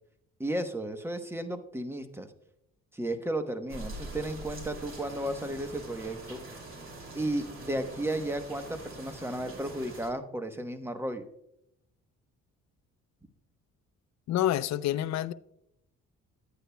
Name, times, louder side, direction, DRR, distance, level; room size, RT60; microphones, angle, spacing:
voice 1, 0.4-2.3 2.9-6.4 7.2-11.2, right 1 dB, 10° right, 0.9 m, -34 dB
sound 1, 3.7-10.1, right 2 dB, 45° right, 2.7 m, -44 dB
voice 2, 14.3-15.3, left 12 dB, 65° left, 0.5 m, -28 dB
11.5 x 9.0 x 2.2 m
cardioid pair, 90°, 30 cm